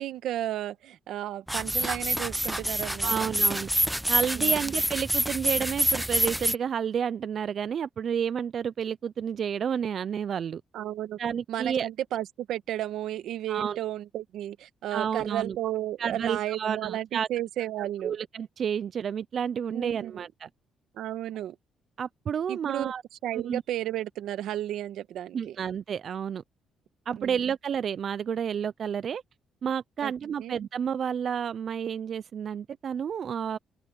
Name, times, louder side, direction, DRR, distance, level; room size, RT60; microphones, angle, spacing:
voice 1, 0.0-3.3 4.4-4.6 10.7-11.2 11.5-18.2 19.7-20.2 20.9-21.5 22.5-22.9 23.2-25.6 27.2-27.4 30.0-30.1 30.4-30.6, right 13 dB, 80° right, 1.3 m, -33 dB
sound 1, 1.5-6.5, equal, 5° right, 0.5 m, -27 dB
voice 2, 3.0-3.7 4.1-10.6 11.2-11.9 13.5-13.8 14.9-15.6 16.0-17.3 18.0-20.5 22.0-23.0 23.4-23.6 25.3-26.4 27.1-29.2 29.6-33.6, right 8 dB, 55° right, 0.4 m, -30 dB
open air
cardioid pair, 90°, 0 cm